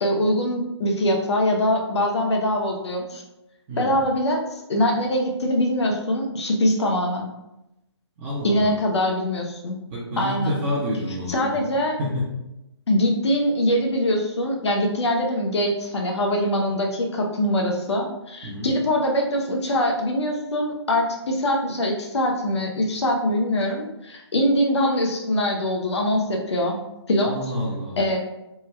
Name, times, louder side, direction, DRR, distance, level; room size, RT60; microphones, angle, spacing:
voice 1, 0.0-3.2 3.8-7.3 8.4-9.8 10.2-10.6 11.3-12.0 12.9-26.8 27.1-27.3 28.0-28.2, left 1 dB, 70° left, 1 dB, 0.7 m, -23 dB
voice 2, 8.2-8.7 9.9-11.6 12.0-12.3 18.4-18.7 27.3-28.0, left 1 dB, 25° right, -6 dB, 0.6 m, -28 dB
3.3 x 2.1 x 3.2 m, 0.90 s
figure-of-eight pair, 145°, 15 cm